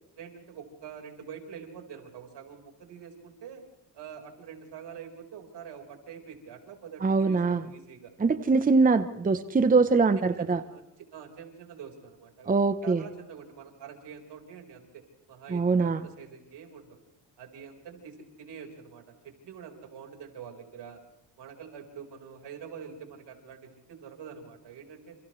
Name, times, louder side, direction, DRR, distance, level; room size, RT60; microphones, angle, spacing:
voice 1, 0.2-3.6 3.9-8.1 10.2-10.8 11.1-12.6 12.8-15.0 15.3-17.0 17.4-21.0 21.4-25.2, right 7 dB, 80° right, 3 dB, 4.6 m, -45 dB
voice 2, 7.0-7.6 8.2-10.6 12.5-13.0 15.5-16.0, right 4 dB, 20° right, 11 dB, 0.8 m, -23 dB
29.0 x 28.0 x 3.2 m, 0.88 s
cardioid pair, 110°, 41 cm